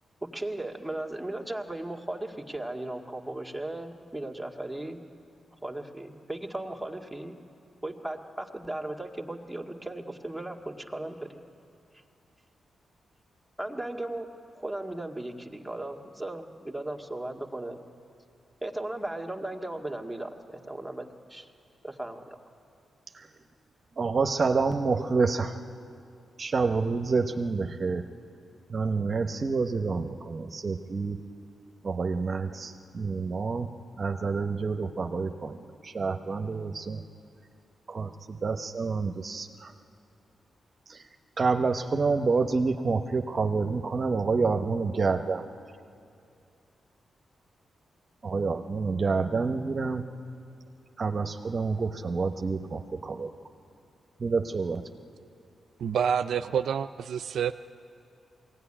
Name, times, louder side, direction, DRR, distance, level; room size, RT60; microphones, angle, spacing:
voice 1, 0.2-5.0 5.6-7.4 7.8-11.4 13.6-14.3 14.5-17.8 18.6-21.5 21.8-22.4, right 1 dB, 5° right, 2 dB, 1.9 m, -36 dB
voice 2, 24.0-25.6 26.4-28.0 28.7-31.2 31.8-37.0 37.9-39.7 40.9-41.1 41.4-45.5 48.2-50.0 51.0-53.3 54.2-54.9, right 4 dB, 45° right, 7 dB, 0.9 m, -28 dB
voice 3, 55.8-57.5, right 8 dB, 80° right, 11 dB, 0.4 m, -27 dB
21.5 x 17.0 x 10.0 m, 2.5 s
cardioid pair, 75°, 0 cm